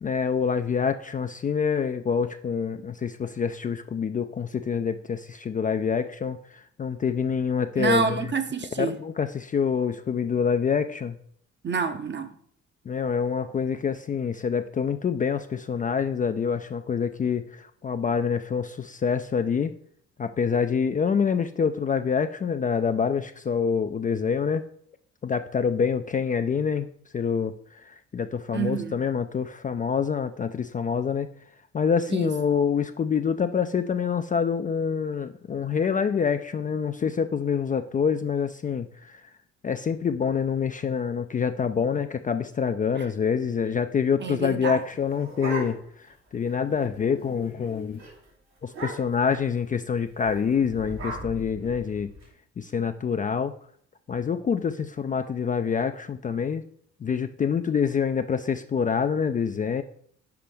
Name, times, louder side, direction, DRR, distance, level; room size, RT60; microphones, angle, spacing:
voice 1, 0.0-8.2 8.8-11.2 12.9-19.7 20.2-24.7 25.2-31.3 31.7-39.2 39.6-48.0 48.6-52.1 52.6-53.5 54.1-56.6 57.0-59.8, left 6 dB, 25° left, 0.4 m, -26 dB
voice 2, 7.8-9.0 11.6-12.3 28.5-29.0 32.1-32.3 43.0-43.1 44.2-44.8, right 5 dB, 35° right, 0.8 m, -28 dB
sound 1, 44.8-46.1 46.5-46.6 46.8-47.1 47.5-47.7 48.0-48.1 48.7-49.3 50.2-52.2, right 1 dB, 90° right, 2.6 m, -37 dB
5.8 x 5.0 x 3.5 m
hypercardioid pair, 50°, 31 cm